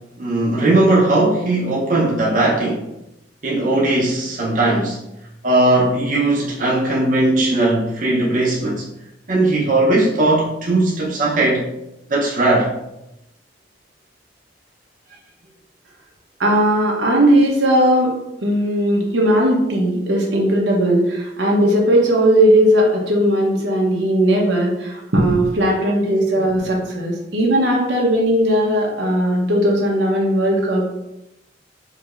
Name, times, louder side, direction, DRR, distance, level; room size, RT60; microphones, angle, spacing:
voice 1, 0.2-2.9 3.4-5.0 5.4-8.9 9.3-11.6 12.1-12.7, right 2 dB, 50° right, -4 dB, 0.8 m, -18 dB
voice 2, 16.4-18.1 18.4-30.9, right 1 dB, 85° right, -1 dB, 0.9 m, -17 dB
4.7 x 2.8 x 2.5 m, 0.87 s
head